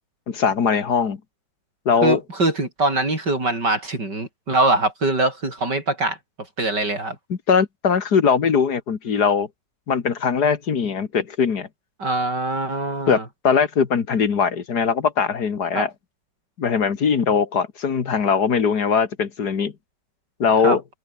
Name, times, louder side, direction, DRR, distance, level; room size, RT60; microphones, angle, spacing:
voice 1, 0.3-1.2 1.9-2.2 7.3-9.5 9.9-11.7 13.1-13.2 13.4-15.9 16.6-19.7 20.4-20.8, left 6 dB, 65° left, 2.3 m, -20 dB
voice 2, 2.0-6.2 6.6-7.2 12.0-13.2 15.7-15.9 20.6-20.8, right 2 dB, 70° right, 7.8 m, -22 dB
open air
omnidirectional pair, 1.9 m